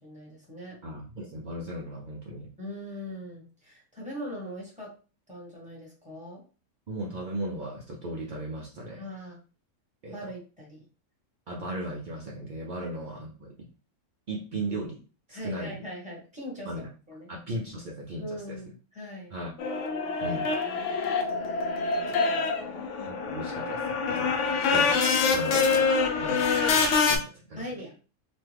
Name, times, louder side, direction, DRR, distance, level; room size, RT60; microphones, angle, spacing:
voice 1, 0.0-0.8 2.6-4.9 5.3-6.4 8.9-9.4 10.1-10.8 12.8-12.9 15.3-16.7 17.1-17.3 18.2-19.3 20.3-22.9 24.5-24.8 27.6-27.9, equal, 5° right, -4 dB, 1.1 m, -41 dB
voice 2, 0.8-2.5 6.9-9.0 10.0-10.3 11.5-13.7 14.3-15.0 15.3-15.8 16.6-16.9 17.3-18.6 19.3-19.5 20.2-20.7 23.1-24.9 25.2-27.6, right 1 dB, 60° right, -3 dB, 0.5 m, -37 dB
sound 1, 19.6-27.2, left 4 dB, 65° left, 0.8 m, -25 dB
3.0 x 2.2 x 3.3 m, 0.35 s
omnidirectional pair, 1.6 m